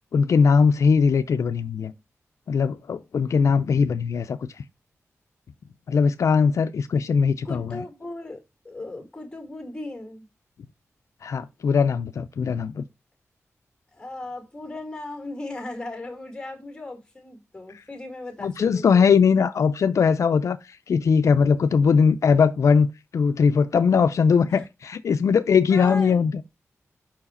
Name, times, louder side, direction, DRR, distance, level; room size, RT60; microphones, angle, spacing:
voice 1, 0.1-1.9 2.5-4.5 5.9-7.8 11.2-12.8 18.4-22.9 23.1-26.4, left 5 dB, 75° left, 0.4 m, -20 dB
voice 2, 7.4-10.3 13.9-19.1 24.5-24.7 25.7-26.3, left 2 dB, 15° left, 2.0 m, -37 dB
5.7 x 4.7 x 4.2 m
wide cardioid pair, 120°, 5 cm